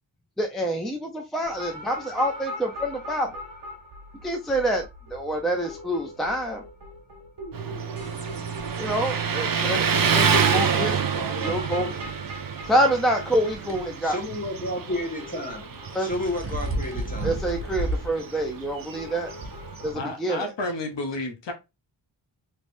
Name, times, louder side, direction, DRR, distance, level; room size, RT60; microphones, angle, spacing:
voice 1, 0.4-3.3 4.2-4.8 5.1-6.6 8.8-11.0 11.4-11.9 12.7-14.2 15.9-16.1 17.2-19.3 19.8-20.4, right 1 dB, ahead, 0.5 m, -26 dB
sound 1, 1.5-19.9, left 1 dB, 65° right, 1.2 m, -42 dB
Motorcycle, 7.5-20.2, right 6 dB, 50° right, 0.6 m, -28 dB
voice 2, 10.1-12.1 13.9-17.3 17.9-18.0, left 1 dB, 20° left, 1.4 m, -33 dB
sound 2, 13.7-13.8 15.7-18.1 18.6-18.7 19.4-19.5, right 1 dB, 30° right, 1.0 m, -31 dB
voice 3, 19.9-21.5, left 2 dB, 65° left, 0.9 m, -31 dB
3.3 x 3.1 x 2.6 m
wide cardioid pair, 100°, 47 cm